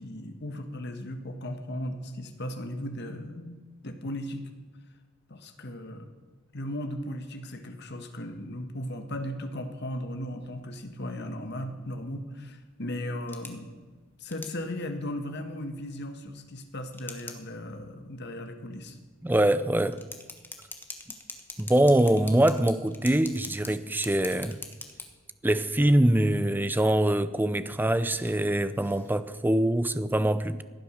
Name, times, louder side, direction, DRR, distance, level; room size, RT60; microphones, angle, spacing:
voice 1, 0.0-4.4 5.3-6.1 6.5-13.7 14.2-19.0, left 1 dB, 55° left, 1.5 m, -36 dB
sound 1, 10.1-29.2, left 3 dB, 10° left, 1.2 m, -48 dB
voice 2, 19.2-20.0 21.6-24.6 25.4-30.6, right 1 dB, 10° right, 0.5 m, -24 dB
15.5 x 9.2 x 6.4 m
head